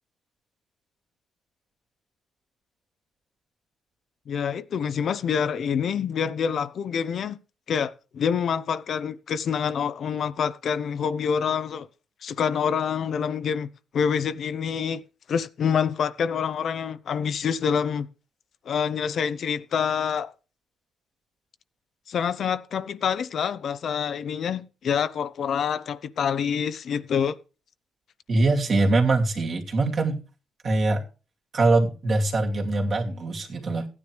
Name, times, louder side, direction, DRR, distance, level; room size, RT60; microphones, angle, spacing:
voice 1, 4.3-7.4 7.7-11.9 12.2-13.7 13.9-15.0 15.3-18.1 18.7-20.3 22.1-27.3, left 7 dB, 60° left, 0.8 m, -26 dB
voice 2, 28.3-30.2 30.6-31.0 31.5-33.9, right 2 dB, 45° right, 2.6 m, -23 dB
15.0 x 9.9 x 3.4 m
cardioid pair, 90°, 0 cm